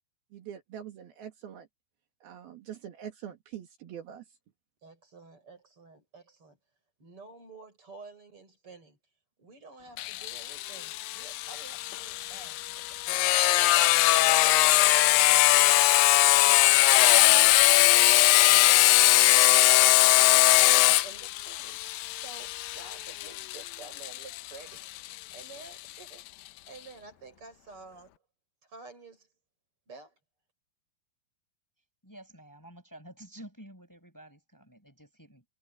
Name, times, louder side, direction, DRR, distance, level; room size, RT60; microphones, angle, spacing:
voice 1, 0.3-1.7 2.2-4.2, right 9 dB, 70° right, 3.8 m, -43 dB
voice 2, 4.8-6.6 7.0-9.0 9.4-13.4 14.2-15.9 16.4-21.8 22.1-24.9 25.3-26.3 26.7-28.2 28.6-29.3 29.9-30.1, right 4 dB, 35° right, 7.6 m, -50 dB
Sawing, 10.0-25.4, left 17 dB, 80° left, 2.1 m, -21 dB
voice 3, 32.0-35.4, right 1 dB, 5° left, 5.8 m, -50 dB
omnidirectional pair, 4.6 m